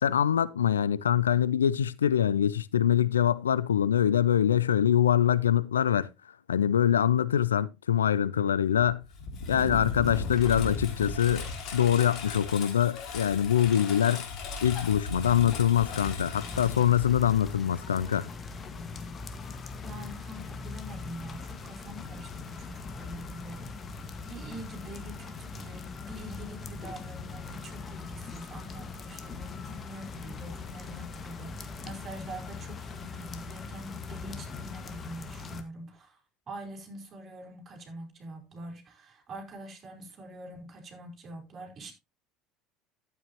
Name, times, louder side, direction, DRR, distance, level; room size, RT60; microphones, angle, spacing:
voice 1, 0.0-6.1 6.5-9.0 9.5-14.3 14.6-18.3, left 9 dB, 85° left, 0.4 m, -24 dB
Engine, 8.8-17.5, left 3 dB, 55° left, 2.8 m, -37 dB
sound 1, 16.3-35.6, left 4 dB, 35° left, 1.7 m, -41 dB
voice 2, 19.8-23.7 24.2-36.2 36.5-41.9, right 1 dB, 40° right, 4.3 m, -44 dB
11.5 x 9.0 x 2.9 m
hypercardioid pair, 65°, 0 cm